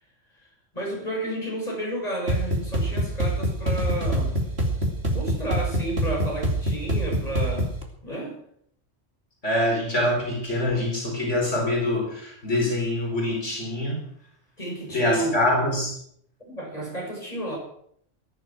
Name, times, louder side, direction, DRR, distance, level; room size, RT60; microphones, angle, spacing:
voice 1, 0.7-4.4 5.1-7.7 8.0-8.4 14.6-15.3 16.5-17.6, right 1 dB, 30° left, -2 dB, 7.6 m, -31 dB
sound 1, 2.3-7.8, right 1 dB, 60° right, 3.0 m, -26 dB
voice 2, 9.4-14.0 14.9-15.9, left 1 dB, 80° left, -1 dB, 4.9 m, -24 dB
19.5 x 11.0 x 6.3 m, 0.66 s
omnidirectional pair, 1.2 m